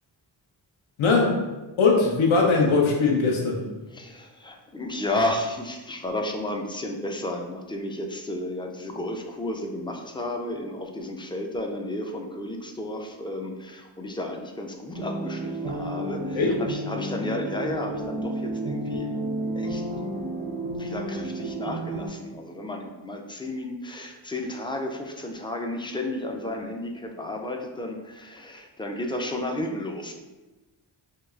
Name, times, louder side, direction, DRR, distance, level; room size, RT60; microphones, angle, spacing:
voice 1, 1.0-1.5 1.8-3.6 16.3-16.6, left 4 dB, 75° left, -1 dB, 0.7 m, -20 dB
voice 2, 3.9-19.1 19.5-20.1 20.7-30.1, left 1 dB, 10° left, 3 dB, 0.3 m, -32 dB
sound 1, 14.9-22.1, right 1 dB, 80° right, 0.7 m, -31 dB
4.5 x 2.3 x 2.3 m, 1.1 s
cardioid pair, 60°, 49 cm